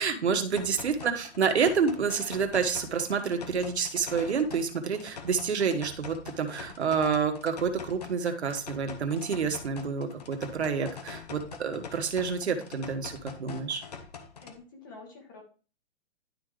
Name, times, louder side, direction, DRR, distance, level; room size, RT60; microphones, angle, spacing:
voice 1, 0.0-13.8, right 6 dB, 75° right, 6 dB, 1.7 m, -28 dB
sound 1, 0.6-14.6, left 5 dB, 35° left, 1.0 m, -44 dB
voice 2, 0.6-0.9 14.4-15.4, left 3 dB, 20° left, 3 dB, 1.3 m, -49 dB
11.5 x 4.0 x 3.3 m, 0.37 s
hypercardioid pair, 180°, 33 cm